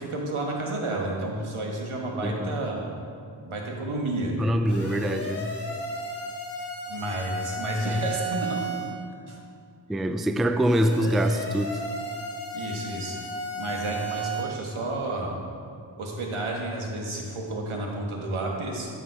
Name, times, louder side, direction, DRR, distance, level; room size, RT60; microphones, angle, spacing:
voice 1, 0.0-2.8 3.4-4.3 6.9-8.8 9.3-9.4 12.5-13.2 13.6-15.4 16.0-18.9, right 2 dB, 75° right, -1 dB, 1.7 m, -31 dB
voice 2, 2.2-2.6 4.4-5.5 7.8-8.0 9.9-11.8, right 1 dB, ahead, 8 dB, 0.4 m, -25 dB
sound 1, 4.6-9.0 10.7-14.4, right 1 dB, 30° left, 1.7 m, -34 dB
13.0 x 5.7 x 4.9 m, 2.3 s
cardioid pair, 50°, 50 cm